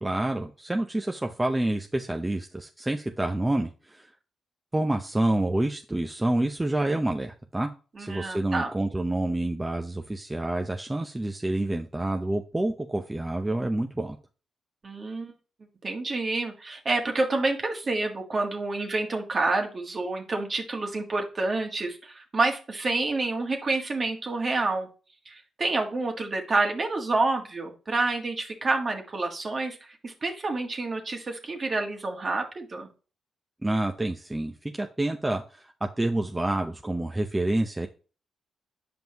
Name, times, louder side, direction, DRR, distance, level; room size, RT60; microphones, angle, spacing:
voice 1, 0.0-4.1 4.7-7.7 8.0-14.2 33.6-37.9, right 1 dB, 15° right, 4 dB, 0.7 m, -28 dB
voice 2, 8.0-8.7 14.8-15.3 15.8-24.9 25.2-32.9, right 3 dB, 45° right, 3 dB, 1.6 m, -28 dB
7.7 x 5.2 x 2.9 m, 0.34 s
supercardioid pair, 55°, 0 cm